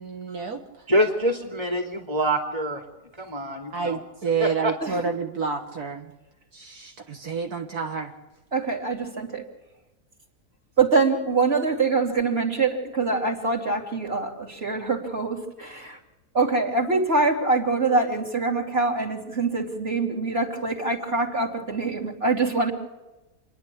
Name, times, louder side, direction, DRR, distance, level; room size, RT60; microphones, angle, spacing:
voice 1, 0.0-0.8 3.7-6.1 6.5-8.1, right 5 dB, 70° right, 3 dB, 2.0 m, -29 dB
voice 2, 0.9-2.8 3.2-4.0 4.4-4.7, equal, 15° right, 3 dB, 2.9 m, -25 dB
voice 3, 8.5-9.5 10.8-16.0 16.3-22.7, right 3 dB, 40° right, 1 dB, 3.4 m, -24 dB
28.5 x 11.0 x 8.5 m, 1.0 s
omnidirectional pair, 1.7 m